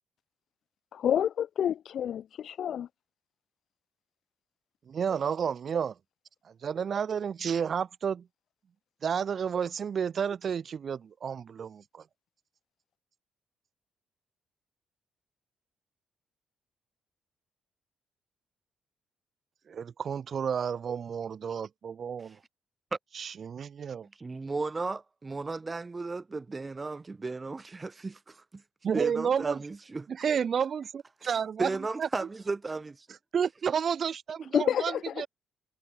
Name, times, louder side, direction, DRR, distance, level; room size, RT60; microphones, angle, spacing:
voice 1, 0.9-2.9 34.5-35.2, left 9 dB, 65° left, 2.2 m, -29 dB
voice 2, 4.9-5.9 6.6-8.2 9.0-12.0 19.7-22.4 23.1-24.1 28.8-29.6 30.1-31.7 32.0-32.1 33.3-35.3, right 7 dB, 50° right, 0.8 m, -31 dB
voice 3, 24.2-28.6 28.9-30.1 31.2-33.1, right 3 dB, 25° right, 4.7 m, -35 dB
cardioid pair, 90°, 0 cm